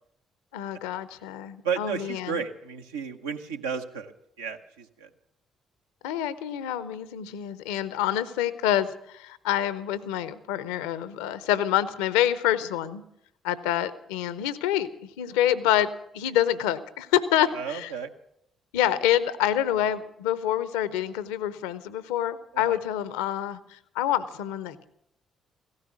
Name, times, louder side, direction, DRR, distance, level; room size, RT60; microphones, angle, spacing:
voice 1, 0.5-2.4 6.0-13.0 13.4-17.9 18.7-24.9, left 11 dB, 70° left, 16 dB, 0.6 m, -27 dB
voice 2, 1.6-4.1 4.4-5.1 17.5-18.1 22.5-22.8, right 6 dB, 80° right, 4 dB, 0.9 m, -33 dB
16.5 x 14.0 x 6.3 m, 0.77 s
figure-of-eight pair, 45°, 0 cm